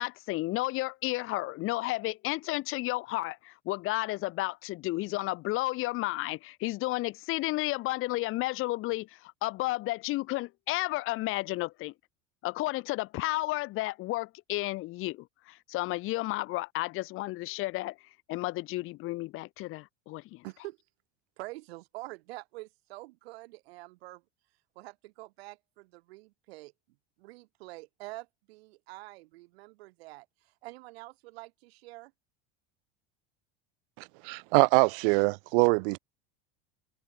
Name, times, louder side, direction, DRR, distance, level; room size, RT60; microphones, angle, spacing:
voice 1, 0.0-11.9 12.4-18.0 18.3-20.4, left 19 dB, 45° left, 2.8 m, -32 dB
voice 2, 20.4-20.8 21.4-24.2 24.8-26.7 27.2-30.3 30.6-32.1, right 21 dB, 85° right, 7.4 m, -46 dB
voice 3, 34.2-36.0, right 32 dB, 65° right, 1.1 m, -23 dB
open air
cardioid pair, 165°, 30 cm